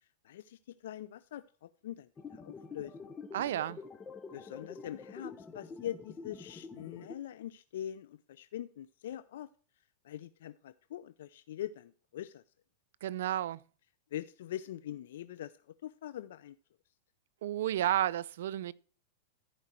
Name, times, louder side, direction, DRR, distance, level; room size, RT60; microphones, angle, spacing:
voice 1, 0.2-3.1 4.3-9.5 10.0-12.4 14.1-15.5 15.8-16.6, left 11 dB, 75° left, 0.5 m, -43 dB
sound 1, 2.2-7.2, left 4 dB, 15° left, 0.8 m, -47 dB
voice 2, 3.3-3.8 13.0-13.6 17.4-18.7, right 12 dB, 75° right, 0.5 m, -32 dB
14.0 x 5.1 x 4.4 m
hypercardioid pair, 130°, 0 cm